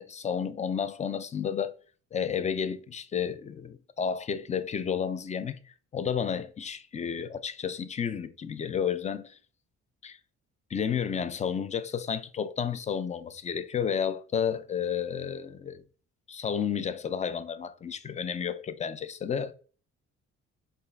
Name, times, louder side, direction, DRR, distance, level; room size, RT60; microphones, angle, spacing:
voice 1, 0.0-1.7 2.1-9.4 10.0-10.2 10.7-15.8 16.3-19.5, left 7 dB, 25° left, 0.4 m, -31 dB
4.3 x 2.5 x 3.3 m
cardioid pair, 90°, 30 cm